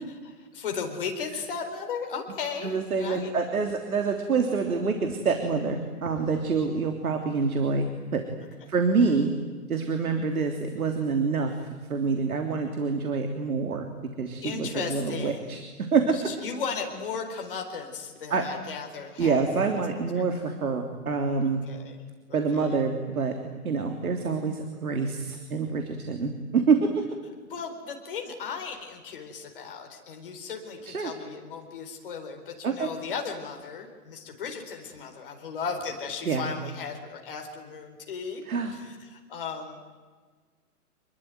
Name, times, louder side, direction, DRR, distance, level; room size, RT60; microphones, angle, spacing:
voice 1, 0.5-3.3 9.9-10.1 14.4-15.6 16.1-19.4 21.4-22.0 22.3-22.7 27.5-38.4 38.7-39.8, left 5 dB, 35° left, 3 dB, 4.3 m, -36 dB
voice 2, 2.6-8.2 8.7-9.3 9.7-11.6 11.9-13.9 14.2-15.6 15.9-16.2 18.3-18.4 19.2-21.6 22.3-23.3 23.6-27.0 30.8-31.1 32.6-32.9 36.2-36.5 38.5-38.7, right 4 dB, 65° right, 5 dB, 3.4 m, -26 dB
27.5 x 21.5 x 9.5 m, 1.5 s
hypercardioid pair, 170°, 46 cm